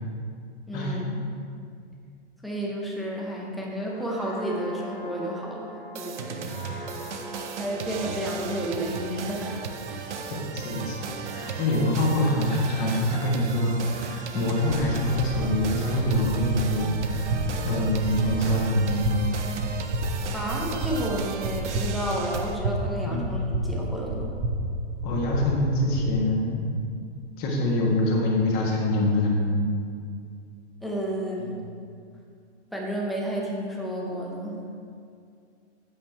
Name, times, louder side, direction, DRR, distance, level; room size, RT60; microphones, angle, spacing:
voice 1, 0.7-1.3 2.4-7.1 7.6-10.0 20.3-24.3 30.8-31.6 32.7-34.6, right 1 dB, ahead, -3 dB, 0.6 m, -31 dB
sound 1, 3.7-11.2 11.6-11.8, equal, 55° left, 2.1 m, -43 dB
sound 2, 5.9-22.5, right 6 dB, 90° right, 0.8 m, -35 dB
voice 2, 10.5-11.0 11.3-17.3 17.6-19.2 23.0-23.3 25.0-26.7 27.4-29.6 31.4-31.5, left 1 dB, 25° left, -2 dB, 1.4 m, -25 dB
sound 3, 14.7-26.1, right 2 dB, 25° right, 0.8 m, -31 dB
8.8 x 5.4 x 4.5 m, 2.3 s
hypercardioid pair, 155°, 34 cm